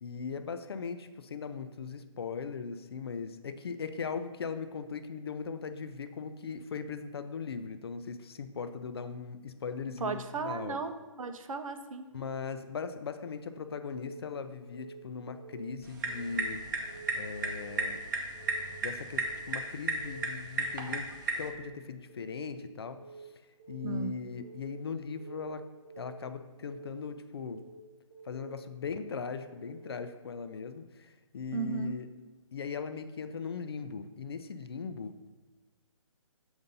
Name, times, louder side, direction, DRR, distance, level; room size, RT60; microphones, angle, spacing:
voice 1, 0.0-10.8 12.1-16.6 17.1-18.0 18.8-23.3 23.7-25.7 26.0-27.7 28.2-32.1 32.5-35.3, left 5 dB, 50° left, 10 dB, 0.4 m, -39 dB
voice 2, 10.0-12.1 23.8-24.1 31.5-31.9, right 4 dB, 80° right, 9 dB, 0.6 m, -35 dB
Keyboard (musical) / Alarm, 13.8-14.2 14.6-15.0 15.3-15.7 16.1-16.5 16.8-17.2 17.6-18.0 18.3-18.7 19.1-19.5 19.8-20.2 20.6-21.0 21.3-21.7 22.1-22.5 22.8-23.2 23.6-24.0 24.3-24.7 25.1-25.5 25.8-26.2 26.6-27.0 27.4-27.7 28.1-28.5 28.9-29.2 29.6-30.0, right 4 dB, 15° right, 1.0 m, -50 dB
sound 1, 15.8-21.5, right 3 dB, 35° right, 0.7 m, -35 dB
6.8 x 2.7 x 5.3 m, 1.2 s
hypercardioid pair, 165°, 17 cm